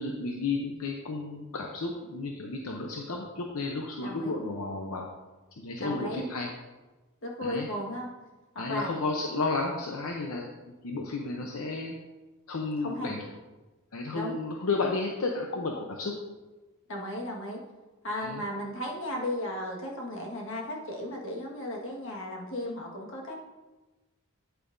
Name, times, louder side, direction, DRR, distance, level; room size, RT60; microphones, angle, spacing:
voice 1, 0.0-5.1 5.6-6.5 7.4-7.7 8.6-10.5 10.8-11.9 12.5-13.3 13.9-16.2 18.2-18.4, left 3 dB, 80° left, 1 dB, 0.8 m, -32 dB
voice 2, 4.0-4.3 5.8-6.2 7.2-8.1 8.7-9.0 12.8-13.1 14.1-14.4 16.9-17.6 18.0-23.3, left 1 dB, 60° left, -1 dB, 1.6 m, -35 dB
9.2 x 8.6 x 2.6 m, 1.2 s
head